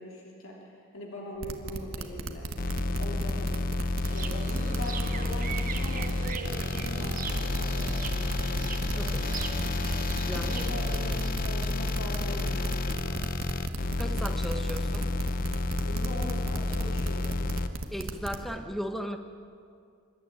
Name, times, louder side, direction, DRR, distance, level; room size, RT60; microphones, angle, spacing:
voice 1, 0.0-2.5 3.0-3.6 4.0-8.6 10.3-13.2 15.8-17.3, left 1 dB, 85° left, -2 dB, 3.3 m, -41 dB
sound 1, 1.4-18.4, right 2 dB, 80° right, 1.5 m, -36 dB
sound 2, 2.6-17.7, left 2 dB, 45° left, 0.9 m, -30 dB
sound 3, 4.0-11.3, right 5 dB, 45° right, 1.2 m, -40 dB
voice 2, 9.0-9.8 10.3-10.5 14.0-15.1 17.9-19.2, equal, ahead, 6 dB, 1.3 m, -36 dB
26.0 x 12.5 x 9.1 m, 2.4 s
head